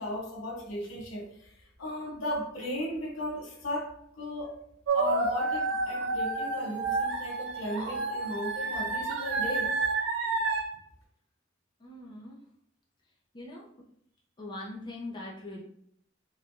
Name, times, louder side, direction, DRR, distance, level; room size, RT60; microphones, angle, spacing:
voice 1, 0.0-1.5 1.8-4.6 4.9-9.8, equal, 80° left, -1 dB, 0.7 m, -36 dB
sound 1, 4.9-10.6, right 3 dB, 65° right, 0.4 m, -30 dB
voice 2, 11.8-12.4 13.3-13.7 14.4-15.6, left 2 dB, 25° left, -3 dB, 0.5 m, -41 dB
3.0 x 2.2 x 2.5 m, 0.70 s
head